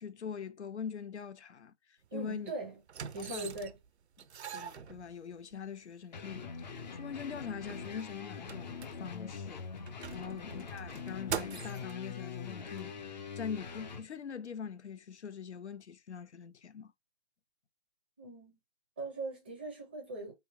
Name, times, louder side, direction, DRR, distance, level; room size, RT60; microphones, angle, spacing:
voice 1, 0.0-2.5 3.2-3.5 4.5-9.7 10.1-16.9, left 7 dB, 90° left, 0.8 m, -43 dB
sound 1, 2.0-2.2 2.9-3.9 4.2-5.5 6.3-6.4 6.7-6.8 7.2-9.3 9.8-12.0 12.8-12.9, right 8 dB, 80° right, 0.6 m, -43 dB
voice 2, 2.1-2.8 3.1-3.8 10.2-10.4 18.2-18.6 19.0-20.3, right 2 dB, 10° right, 0.5 m, -41 dB
sound 2, 6.1-14.1, left 5 dB, 40° left, 0.7 m, -43 dB
3.4 x 2.8 x 4.6 m
hypercardioid pair, 160°, 33 cm